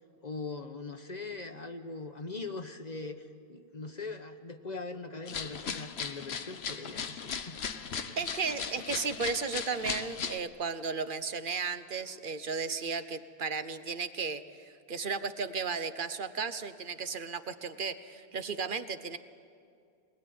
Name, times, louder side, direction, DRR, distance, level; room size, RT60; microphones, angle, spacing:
voice 1, 0.2-7.6 7.9-8.2, left 3 dB, 45° left, 6 dB, 1.1 m, -41 dB
sound 1, 5.3-10.4, left 6 dB, 75° left, 1.1 m, -37 dB
voice 2, 8.2-19.2, right 5 dB, 55° right, 11 dB, 1.1 m, -34 dB
22.5 x 20.0 x 9.5 m, 2.4 s
omnidirectional pair, 1.1 m